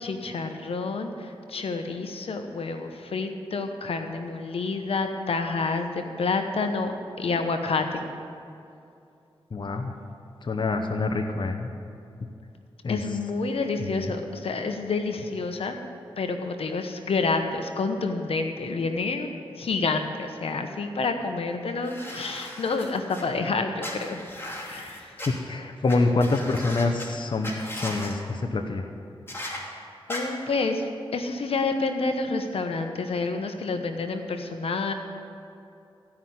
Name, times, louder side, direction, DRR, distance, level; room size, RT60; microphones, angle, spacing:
voice 1, 0.0-8.1 12.9-15.8 16.2-19.3 19.6-24.2 24.7-25.1 30.1-34.9, left 3 dB, 75° left, 6 dB, 1.0 m, -28 dB
voice 2, 9.5-9.9 10.4-11.7 12.8-13.0 13.9-14.1 25.3-28.8, left 3 dB, 50° left, 5 dB, 0.9 m, -26 dB
sound 1, 21.8-23.2 23.8-25.3 25.9-26.0 26.2-27.1 27.4-28.1 29.3-29.6 30.1-30.2, left 1 dB, 25° left, 2.6 m, -37 dB
15.0 x 5.9 x 9.4 m, 2.6 s
cardioid pair, 60°, 10 cm